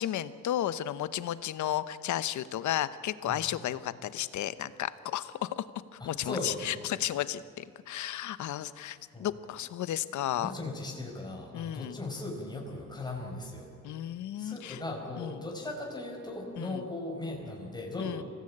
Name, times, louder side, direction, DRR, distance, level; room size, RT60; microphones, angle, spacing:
voice 1, 0.0-5.6 5.9-10.5 11.5-12.0 13.8-14.8 15.2-15.4 16.6-16.9 18.0-18.2, left 12 dB, 70° left, 14 dB, 0.9 m, -33 dB
voice 2, 6.0-6.6 9.1-9.3 10.4-13.7 14.4-18.2, left 2 dB, 15° left, -2 dB, 5.0 m, -38 dB
25.0 x 17.5 x 8.7 m, 2.3 s
cardioid pair, 90°, 30 cm